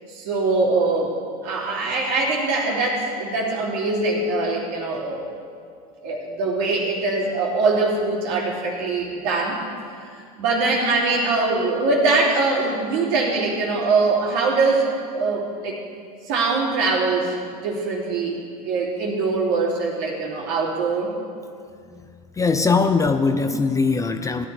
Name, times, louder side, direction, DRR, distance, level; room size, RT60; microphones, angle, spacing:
voice 1, 0.1-1.2 1.4-5.3 6.0-9.6 10.1-15.8 16.2-21.1, right 3 dB, 60° right, -3 dB, 2.9 m, -22 dB
voice 2, 22.3-24.5, left 4 dB, 15° left, 8 dB, 0.5 m, -20 dB
16.0 x 11.0 x 3.4 m, 2.2 s
hypercardioid pair, 90°, 19 cm